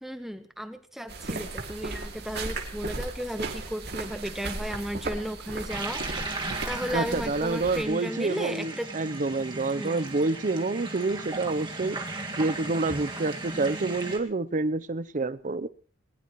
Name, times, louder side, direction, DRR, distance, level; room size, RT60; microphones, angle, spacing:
voice 1, 0.0-8.9 9.8-10.1, equal, ahead, 9 dB, 0.8 m, -35 dB
sound 1, 1.1-7.8, right 3 dB, 55° right, 2.4 m, -36 dB
sound 2, 5.7-14.2, right 2 dB, 25° right, 1.9 m, -36 dB
voice 2, 6.9-12.0 12.4-15.7, right 3 dB, 40° right, 16 dB, 0.6 m, -28 dB
20.0 x 20.0 x 3.1 m, 0.41 s
head